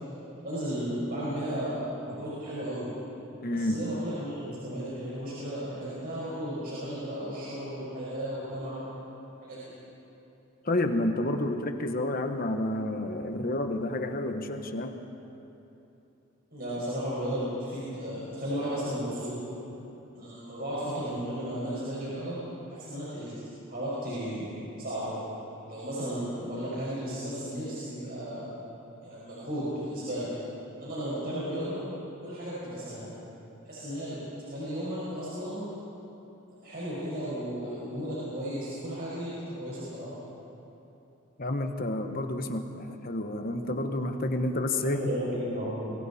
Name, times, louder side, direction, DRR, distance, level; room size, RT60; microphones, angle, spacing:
voice 1, 0.4-2.9 3.5-8.8 9.4-9.7 16.5-19.3 20.1-22.4 22.7-23.3 23.7-24.5 24.8-25.2 25.6-28.5 29.0-30.3 30.8-31.8 32.2-33.0 33.6-34.2 34.5-35.6 36.6-40.1 45.0-45.9, equal, 45° right, -9 dB, 5.8 m, -34 dB
voice 2, 3.4-3.8 10.6-15.0 41.4-45.1, left 1 dB, 40° left, 6 dB, 1.2 m, -30 dB
29.5 x 23.5 x 4.3 m, 3.0 s
head